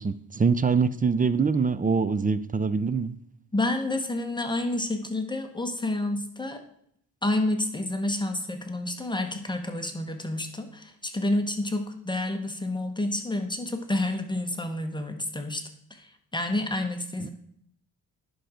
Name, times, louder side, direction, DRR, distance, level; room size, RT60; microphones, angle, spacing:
voice 1, 0.0-3.1 17.2-17.3, right 5 dB, 25° right, 15 dB, 0.4 m, -24 dB
voice 2, 3.5-6.6 7.2-15.6 15.9-17.3, left 1 dB, 10° left, 5 dB, 1.1 m, -29 dB
10.5 x 6.2 x 5.0 m, 0.70 s
cardioid pair, 120°, 39 cm